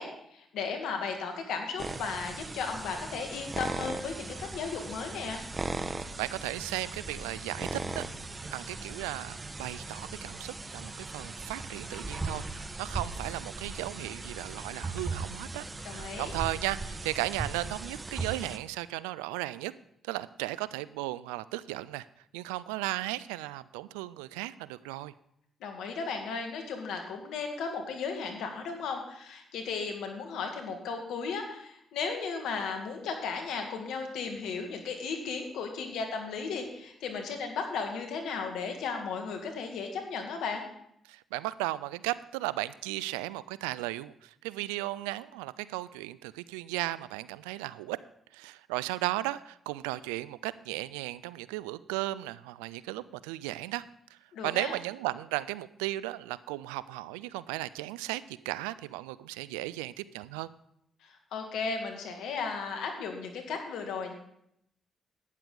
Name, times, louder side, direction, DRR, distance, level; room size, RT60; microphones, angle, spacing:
voice 1, 0.0-5.4 15.8-16.3 25.6-40.6 54.3-54.7 61.0-64.1, left 5 dB, 75° left, 4 dB, 1.8 m, -35 dB
sound 1, 1.8-18.6, right 3 dB, 30° right, 0.9 m, -38 dB
voice 2, 6.0-8.0 8.5-15.6 15.9-19.7 20.0-22.1 22.3-25.1 41.1-48.0 48.3-53.8 54.1-54.2 54.4-60.5, right 17 dB, 90° right, 17 dB, 0.3 m, -35 dB
11.5 x 9.5 x 3.9 m, 0.74 s
hypercardioid pair, 50°, 0 cm